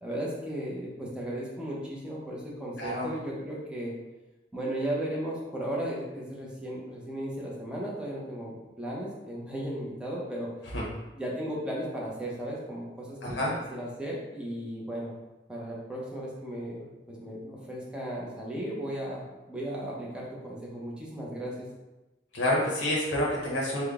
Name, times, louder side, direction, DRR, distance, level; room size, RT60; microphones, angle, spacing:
voice 1, 0.0-3.9 4.5-10.5 11.1-13.4 13.7-15.1 15.5-21.7, right 1 dB, 5° right, -5 dB, 0.8 m, -35 dB
voice 2, 2.8-3.1 10.7-10.8 13.2-13.6 22.3-23.8, left 1 dB, 80° left, -4 dB, 0.8 m, -28 dB
3.7 x 2.3 x 3.5 m, 1.0 s
head